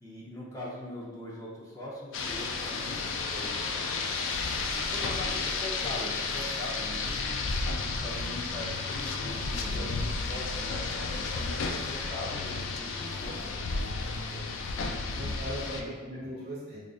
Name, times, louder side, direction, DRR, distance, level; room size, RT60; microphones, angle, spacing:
voice 1, 0.0-3.6 4.5-13.4 15.0-15.4 15.8-16.4, left 1 dB, 15° left, -7 dB, 0.6 m, -41 dB
Rain, 2.1-15.8, left 4 dB, 65° left, 0.3 m, -32 dB
voice 2, 14.3-15.8 16.1-16.8, equal, 50° right, -6 dB, 1.2 m, -40 dB
4.8 x 2.5 x 2.4 m, 1.3 s
head